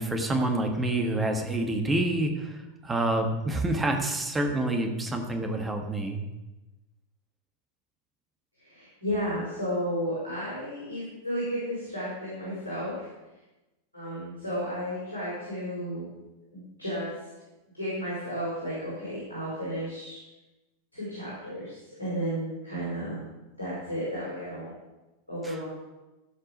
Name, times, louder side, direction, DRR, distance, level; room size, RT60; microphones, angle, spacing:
voice 1, 0.0-6.2 25.4-25.5, right 1 dB, 15° right, 3 dB, 1.6 m, -27 dB
voice 2, 8.6-13.1 13.9-16.1 16.5-17.1 17.7-20.2 20.9-23.2 23.6-24.7 25.3-25.6, equal, 85° right, -8 dB, 4.4 m, -33 dB
14.5 x 5.4 x 5.2 m, 1.0 s
figure-of-eight pair, 90°, 0 cm